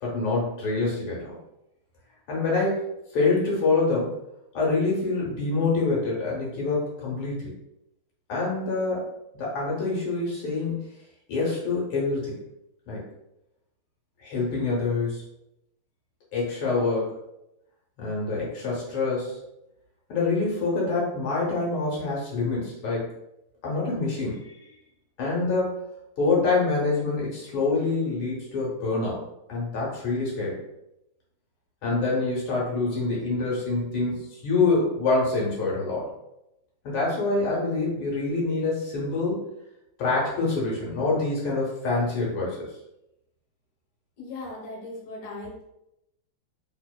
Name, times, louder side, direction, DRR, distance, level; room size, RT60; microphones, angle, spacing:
voice 1, 0.0-1.3 2.3-2.9 3.1-4.2 4.5-7.5 8.3-9.1 9.4-10.8 11.3-12.4 12.9-13.0 14.2-15.2 16.3-17.1 18.0-19.4 20.1-23.1 23.6-24.6 25.2-25.8 26.2-29.2 29.5-30.6 31.8-36.1 36.8-39.5 40.0-42.7, left 3 dB, 75° left, -5 dB, 1.8 m, -26 dB
voice 2, 44.2-45.6, left 2 dB, 55° left, -4 dB, 1.4 m, -38 dB
3.5 x 2.9 x 2.2 m, 0.86 s
omnidirectional pair, 2.4 m